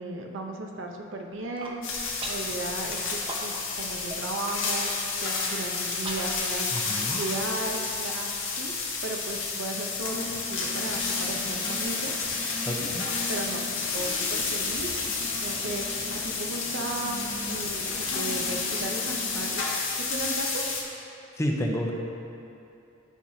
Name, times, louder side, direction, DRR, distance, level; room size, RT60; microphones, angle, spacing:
voice 1, 0.0-4.9 5.2-12.1 12.7-12.9 13.3-13.6 13.9-17.2 17.5-19.6 20.0-20.7, right 2 dB, 70° right, 2 dB, 0.7 m, -36 dB
Human voice, 1.3-1.8 2.2-2.5 2.9-3.8 4.1-4.2 4.6-4.9 5.5-8.3, right 2 dB, 25° right, 0.7 m, -40 dB
sound 1, 1.8-20.8, left 4 dB, 90° left, 1.5 m, -31 dB
voice 2, 6.7-7.2 12.7-13.1 21.4-21.9, equal, 15° left, -1 dB, 0.7 m, -29 dB
sound 2, 10.1-19.5, left 2 dB, 70° left, 1.2 m, -40 dB
12.0 x 5.6 x 2.7 m, 2.7 s
head